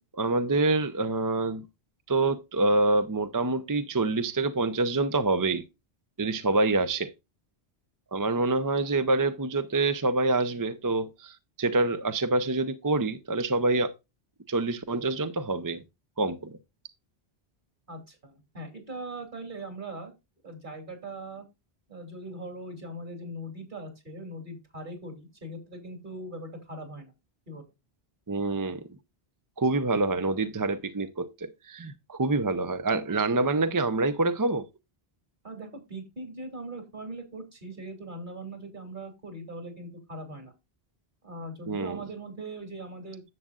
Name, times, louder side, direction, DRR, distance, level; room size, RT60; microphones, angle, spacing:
voice 1, 0.1-1.6 2.1-5.6 6.2-7.1 8.1-13.9 14.5-15.8 16.2-16.6 28.3-28.8 29.6-34.7 41.7-42.0, right 2 dB, 25° right, 0.4 m, -26 dB
voice 2, 17.9-20.1 20.4-21.5 21.9-27.1 27.5-27.6 35.4-40.5 41.2-43.2, right 1 dB, 50° right, 2.9 m, -40 dB
10.5 x 7.5 x 2.4 m
omnidirectional pair, 1.1 m